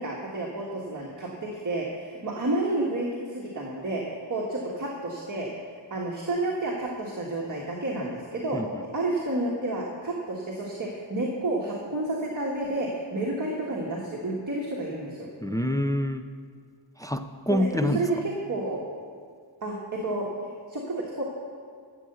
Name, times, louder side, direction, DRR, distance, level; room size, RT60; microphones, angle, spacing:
voice 1, 0.0-5.5 5.9-8.6 8.9-15.3 17.5-18.8 19.6-21.2, right 2 dB, 40° right, -3 dB, 1.6 m, -30 dB
voice 2, 15.4-16.3 17.0-18.1, left 1 dB, 10° left, 7 dB, 0.4 m, -27 dB
12.5 x 7.9 x 6.8 m, 2.1 s
wide cardioid pair, 115°, 46 cm